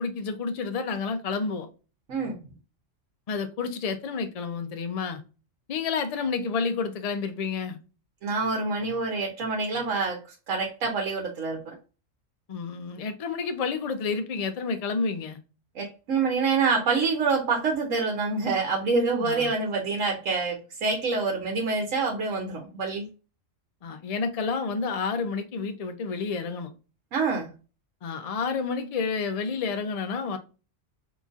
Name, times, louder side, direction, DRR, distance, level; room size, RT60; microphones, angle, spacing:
voice 1, 0.0-1.7 3.3-5.2 5.7-7.8 12.5-15.4 19.2-19.5 23.8-26.7 28.0-30.4, left 5 dB, 55° left, 0.4 m, -30 dB
voice 2, 8.2-10.2 10.5-11.7 15.8-23.1 27.1-27.5, right 4 dB, 85° right, 1.1 m, -26 dB
3.8 x 2.9 x 2.4 m
omnidirectional pair, 1.3 m